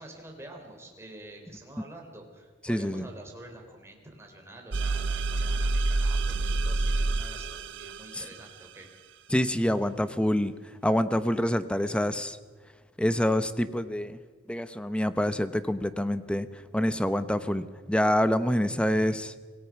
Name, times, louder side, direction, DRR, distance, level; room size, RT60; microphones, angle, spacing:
voice 1, 0.0-8.9, right 1 dB, 15° right, 1 dB, 3.8 m, -47 dB
voice 2, 2.7-3.0 8.1-8.2 9.3-10.5 10.8-12.4 13.0-14.2 14.5-16.5 16.7-19.3, equal, 5° left, 12 dB, 0.8 m, -26 dB
sound 1, 4.7-8.3, right 2 dB, 85° right, 0.7 m, -27 dB
26.0 x 17.5 x 6.0 m, 1.5 s
head